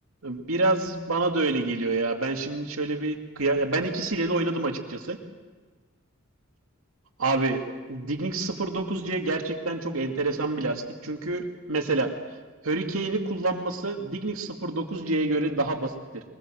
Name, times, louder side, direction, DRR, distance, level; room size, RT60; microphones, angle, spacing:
voice 1, 0.2-5.2 7.2-12.1 12.6-16.2, right 2 dB, 80° right, 3 dB, 2.5 m, -27 dB
23.5 x 20.5 x 7.7 m, 1.4 s
head